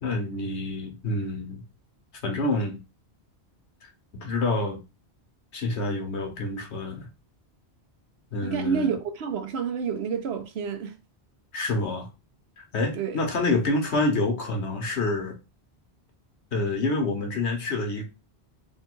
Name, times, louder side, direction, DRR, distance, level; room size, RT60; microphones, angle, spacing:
voice 1, 0.0-1.6 2.2-2.8 3.8-4.8 5.5-7.1 8.3-9.0 11.5-12.1 12.6-15.3 16.5-18.1, left 2 dB, 90° left, 1.3 m, -27 dB
voice 2, 8.4-11.0 12.9-13.2, right 6 dB, 75° right, 1.0 m, -29 dB
3.4 x 2.3 x 4.4 m
omnidirectional pair, 1.1 m